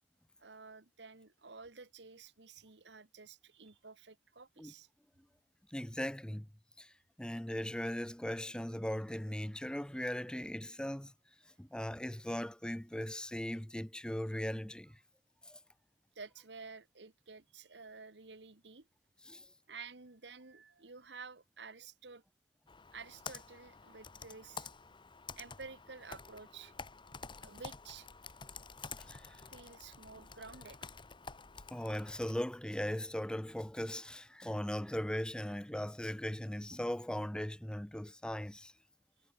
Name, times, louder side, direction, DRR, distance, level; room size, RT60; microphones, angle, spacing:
voice 1, 0.4-4.9 16.1-18.9 19.7-22.2 22.9-24.7 25.4-26.7 27.4-28.1 29.5-30.8, right 4 dB, 85° right, 1.7 m, -51 dB
voice 2, 5.7-6.5 6.8-6.9 7.2-11.1 11.6-15.0 15.4-15.6 19.3-19.5 29.1-29.4 31.7-38.7, equal, 5° left, 0.6 m, -39 dB
Computer keyboard, 22.7-32.3, left 5 dB, 30° left, 1.2 m, -50 dB
head